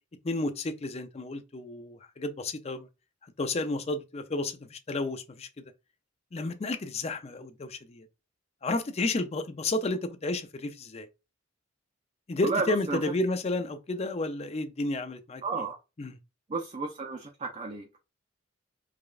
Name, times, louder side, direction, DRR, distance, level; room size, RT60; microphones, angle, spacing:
voice 1, 0.2-2.9 3.4-5.5 6.3-8.1 8.6-11.1 12.3-15.4 16.0-16.2, left 2 dB, 35° left, 0.4 m, -31 dB
voice 2, 12.4-13.0 15.4-15.8 16.5-18.0, right 4 dB, 35° right, 0.5 m, -32 dB
4.9 x 2.4 x 2.4 m
head